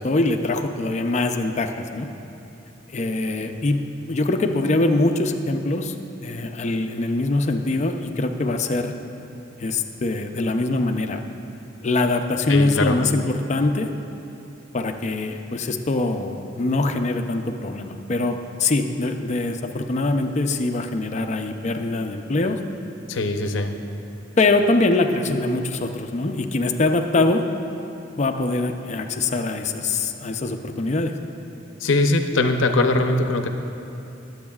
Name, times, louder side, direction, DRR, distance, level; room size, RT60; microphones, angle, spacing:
voice 1, 0.0-2.1 2.9-5.9 6.2-8.9 9.6-11.2 11.8-13.9 14.7-22.6 24.4-27.4 28.2-31.2, left 2 dB, 35° left, 6 dB, 0.5 m, -23 dB
voice 2, 12.5-13.0 23.1-23.7 31.8-33.5, left 2 dB, 85° left, 6 dB, 0.7 m, -21 dB
20.5 x 8.0 x 2.4 m, 2.8 s
head